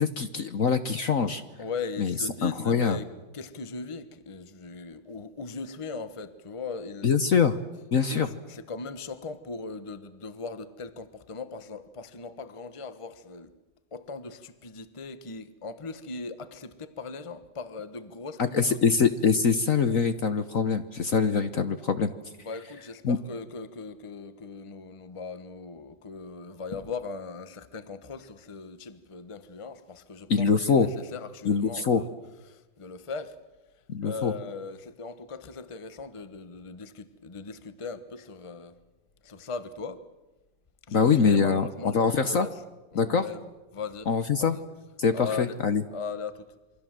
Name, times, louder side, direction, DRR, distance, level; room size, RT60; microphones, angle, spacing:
voice 1, 0.0-1.4 2.0-2.1 2.4-3.0 7.0-7.6 7.9-8.3 18.5-22.1 23.0-23.2 30.3-30.9 31.4-32.0 33.9-34.3 40.9-41.7 41.9-42.5 42.9-43.2 44.1-44.5 45.0-45.8, left 5 dB, 50° left, 1.2 m, -24 dB
voice 2, 1.6-3.1 3.3-7.2 8.0-13.5 13.9-19.0 22.4-32.1 32.5-33.4 34.0-38.8 39.2-40.0 40.9-42.6 42.9-44.1 44.4-44.6 45.1-45.6 45.9-46.5, left 4 dB, 20° left, 1.0 m, -39 dB
28.0 x 23.5 x 7.6 m
omnidirectional pair, 2.0 m